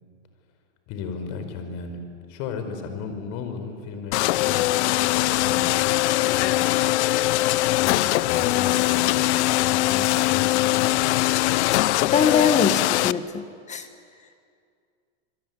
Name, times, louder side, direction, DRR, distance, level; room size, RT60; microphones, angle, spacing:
voice 1, 0.9-2.0 2.3-6.0 6.3-6.7 7.7-11.3, left 5 dB, 50° left, 7 dB, 5.0 m, -35 dB
sound 1, 4.1-13.1, left 17 dB, 65° left, 0.8 m, -21 dB
voice 2, 12.0-13.9, left 6 dB, 20° left, 9 dB, 1.4 m, -23 dB
27.0 x 23.0 x 9.7 m, 2.3 s
supercardioid pair, 140°, 36 cm